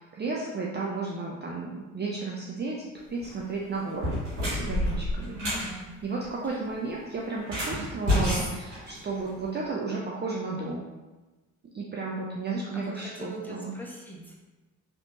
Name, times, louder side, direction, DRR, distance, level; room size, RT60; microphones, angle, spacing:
voice 1, 0.0-4.1 4.4-10.9 11.7-13.7, right 3 dB, 30° right, -3 dB, 0.5 m, -33 dB
sound 1, 3.1-3.4 3.9-5.7 7.4-9.4, left 1 dB, 90° right, 1.5 m, -29 dB
voice 2, 5.4-5.9 6.4-6.6 12.7-14.3, equal, 5° left, -4 dB, 0.9 m, -40 dB
3.3 x 2.9 x 2.5 m, 1.2 s
hypercardioid pair, 45°, 37 cm